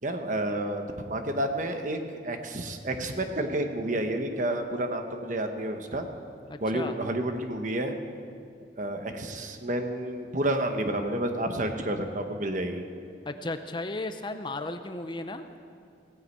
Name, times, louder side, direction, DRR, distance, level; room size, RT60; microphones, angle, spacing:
voice 1, 0.0-6.1 6.6-8.0 8.8-12.9, right 1 dB, 45° right, 5 dB, 1.2 m, -30 dB
voice 2, 6.5-6.9 13.3-15.4, left 2 dB, 25° left, 9 dB, 0.6 m, -35 dB
16.5 x 9.7 x 8.5 m, 2.3 s
head